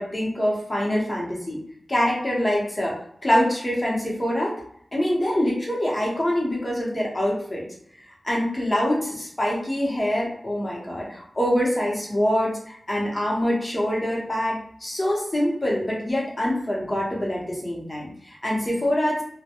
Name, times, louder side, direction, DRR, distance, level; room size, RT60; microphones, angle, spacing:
voice 1, 0.0-1.6 1.9-4.6 4.9-7.7 8.2-19.2, equal, 30° left, -4 dB, 0.8 m, -25 dB
2.1 x 2.1 x 2.8 m, 0.67 s
wide cardioid pair, 90°, 0 cm